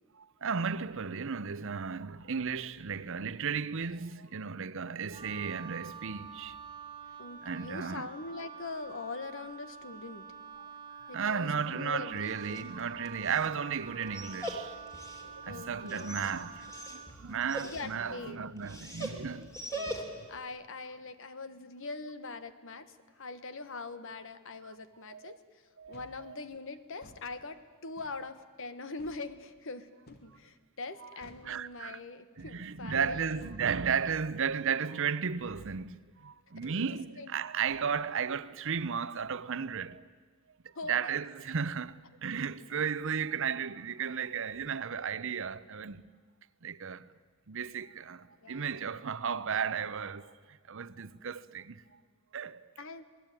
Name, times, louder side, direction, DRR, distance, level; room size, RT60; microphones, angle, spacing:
voice 1, 0.2-6.6 7.4-8.1 11.1-14.7 15.4-19.6 25.1-25.4 25.8-26.4 31.4-32.0 32.4-40.0 40.9-46.0 46.6-47.1 47.5-50.3 50.7-51.8 52.3-52.6, right 6 dB, 60° right, 0.7 m, -34 dB
Wind instrument woodwind instrument, 5.1-17.2, right 6 dB, 20° right, 1.9 m, -47 dB
voice 2, 7.2-10.2 11.1-12.7 15.5-16.2 17.6-18.6 19.7-33.5 36.8-36.9 37.2-37.4 40.7-41.2 48.4-48.8 52.8-53.0, left 3 dB, 65° left, 1.4 m, -43 dB
Dog, 12.1-20.4, right 1 dB, 15° left, 2.9 m, -43 dB
sound 1, 25.9-26.2 26.9-27.3 28.0-28.2 29.0-29.2 30.1-30.3 31.2-31.5 32.4-32.6 33.4-33.6 34.4-34.6 35.6-35.8 36.6-36.8 37.7-37.9, left 1 dB, 50° left, 2.4 m, -56 dB
27.0 x 19.5 x 9.1 m
head